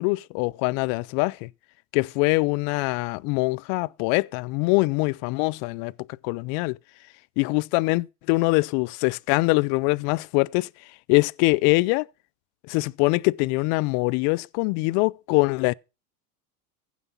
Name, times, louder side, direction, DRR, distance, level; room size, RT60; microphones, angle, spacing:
voice 1, 0.0-1.5 1.9-5.9 6.2-6.8 7.4-10.7 11.1-12.1 12.7-15.7, left 25 dB, 60° left, 0.6 m, -23 dB
15.5 x 6.2 x 5.5 m
supercardioid pair, 100°, 45 cm